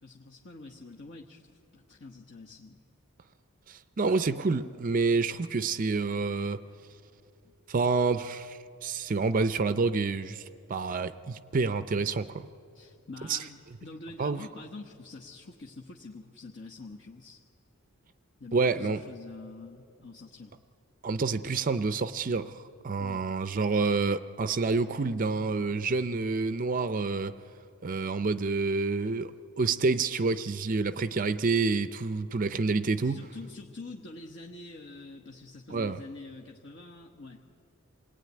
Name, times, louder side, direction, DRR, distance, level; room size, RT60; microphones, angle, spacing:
voice 1, 0.0-2.8 7.4-7.5 12.7-17.4 18.4-20.6 23.0-23.2 33.0-37.4, left 3 dB, 55° left, 0 dB, 1.2 m, -46 dB
voice 2, 3.7-6.6 7.7-12.5 13.3-13.4 14.2-14.5 18.5-19.0 21.0-22.6 22.8-27.3 27.8-33.2 35.7-36.0, right 4 dB, 40° right, 12 dB, 0.5 m, -28 dB
27.0 x 19.0 x 9.4 m, 2.7 s
head